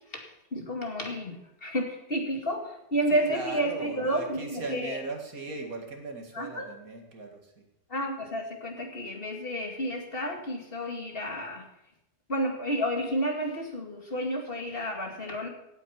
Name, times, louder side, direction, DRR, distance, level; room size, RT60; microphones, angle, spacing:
voice 1, 0.5-5.0 6.3-6.7 7.9-11.7 12.3-15.5, equal, 35° left, 2 dB, 2.4 m, -31 dB
voice 2, 3.1-7.6, right 3 dB, 60° right, 3 dB, 2.6 m, -38 dB
16.5 x 9.4 x 5.7 m, 0.86 s
omnidirectional pair, 1.7 m